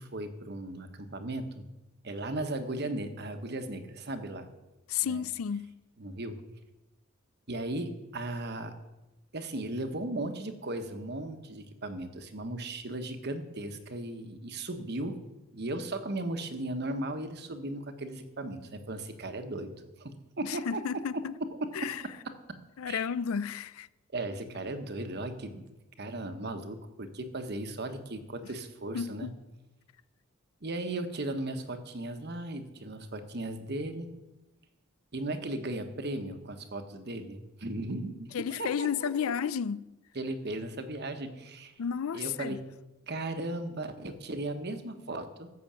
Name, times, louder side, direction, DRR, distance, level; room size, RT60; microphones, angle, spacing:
voice 1, 0.0-1.6 2.0-4.5 5.0-5.2 6.0-6.4 7.5-8.7 9.3-15.2 15.5-19.7 20.0-20.8 21.4-21.7 22.5-22.6 22.9-23.1 24.1-25.6 26.0-29.3 30.6-34.1 35.1-39.1 40.1-41.7 42.1-42.6 43.1-45.5, right 2 dB, 50° right, 1.2 m, -36 dB
voice 2, 4.9-5.7 20.4-21.3 21.7-22.0 22.8-23.9 28.9-29.3 38.3-39.9 41.8-42.6, left 7 dB, 85° left, 0.4 m, -32 dB
14.5 x 6.2 x 7.5 m
head